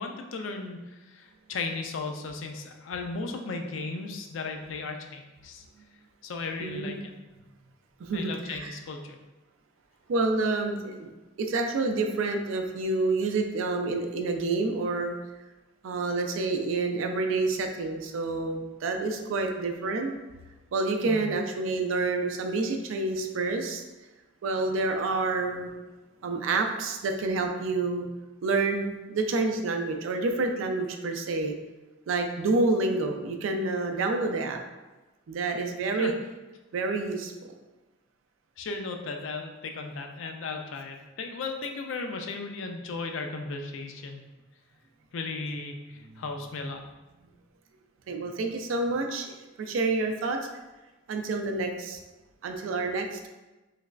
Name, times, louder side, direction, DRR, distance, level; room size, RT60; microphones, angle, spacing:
voice 1, 0.0-5.6 6.2-7.1 8.1-9.2 21.1-21.3 35.9-36.1 38.6-44.2 45.1-46.8, left 3 dB, 65° left, 4 dB, 0.4 m, -36 dB
voice 2, 6.6-7.0 8.0-8.7 10.1-11.1 11.4-15.2 15.8-20.1 20.7-23.8 24.4-25.7 26.2-28.1 28.4-31.6 32.1-34.6 35.3-36.1 36.7-37.3 48.1-50.4 51.1-52.0 52.4-53.3, right 3 dB, 70° right, 4 dB, 0.4 m, -28 dB
3.2 x 3.0 x 2.4 m, 1.1 s
head